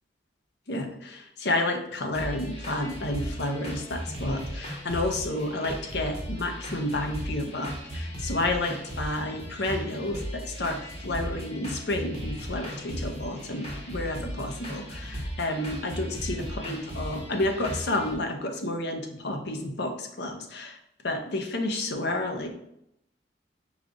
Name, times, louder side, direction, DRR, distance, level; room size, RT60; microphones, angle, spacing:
voice 1, 0.7-22.5, left 2 dB, 60° left, 4 dB, 0.7 m, -30 dB
sound 1, 2.1-18.1, equal, 35° left, 1.0 m, -37 dB
4.9 x 2.4 x 3.9 m, 0.79 s
head